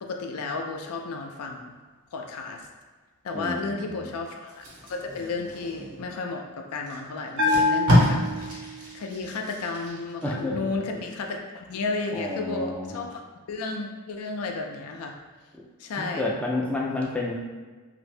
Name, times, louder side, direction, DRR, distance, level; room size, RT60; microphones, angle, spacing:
voice 1, 0.0-1.8 2.1-2.7 3.2-13.2 13.5-15.2 15.8-16.3, left 3 dB, 75° left, 3 dB, 0.4 m, -33 dB
voice 2, 3.3-4.1 10.2-10.7 12.1-13.1 16.0-17.4, left 2 dB, 5° left, -4 dB, 0.3 m, -30 dB
Packing tape duct tape, 4.5-6.2 6.9-7.0 7.3-10.3 10.7-10.9, equal, 85° right, 1.2 m, -27 dB
Bell, 7.4-9.0, left 3 dB, 55° right, 0.5 m, -25 dB
2.7 x 2.5 x 3.2 m, 1.4 s
head